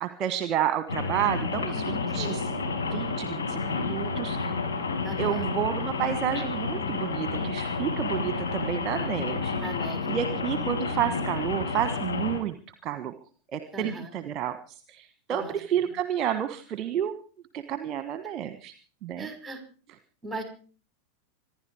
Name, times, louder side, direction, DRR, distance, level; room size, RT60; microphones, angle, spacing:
voice 1, 0.0-2.5 2.9-4.6 5.2-9.6 10.1-12.5 12.8-13.1 13.5-17.1 17.5-18.7 19.0-19.3, right 10 dB, 35° right, 11 dB, 1.3 m, -30 dB
Rain, 0.9-12.4, left 4 dB, 65° left, 5.4 m, -30 dB
voice 2, 5.0-5.5 9.6-10.4 13.7-14.1 15.3-15.9 19.2-19.6 20.2-20.4, right 1 dB, 5° right, 6 dB, 5.6 m, -38 dB
26.0 x 11.0 x 4.9 m, 0.41 s
figure-of-eight pair, 90°, 0 cm